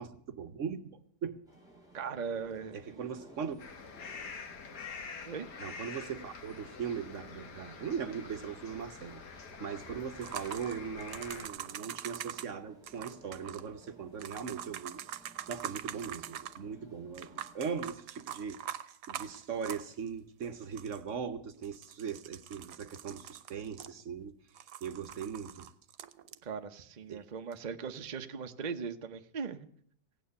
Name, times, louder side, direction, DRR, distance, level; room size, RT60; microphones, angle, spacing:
voice 1, 0.0-1.4 2.7-3.6 5.6-15.0 15.5-24.3 24.8-25.7 27.1-27.2, right 7 dB, 55° right, 9 dB, 1.0 m, -39 dB
sound 1, 1.5-17.8, equal, ahead, 6.1 m, -59 dB
voice 2, 1.9-3.1 5.2-5.5 26.4-29.7, right 6 dB, 40° right, 7 dB, 0.6 m, -39 dB
sound 2, 3.6-11.5, left 5 dB, 80° left, 2.0 m, -46 dB
sound 3, 10.2-12.5 12.8-13.7 14.2-16.6 17.1-20.1 20.4-20.5 20.7-21.1 21.6-24.2 24.5-26.4 27.5-27.6, right 10 dB, 75° right, 1.3 m, -44 dB
17.0 x 9.0 x 6.9 m, 0.65 s
omnidirectional pair, 1.8 m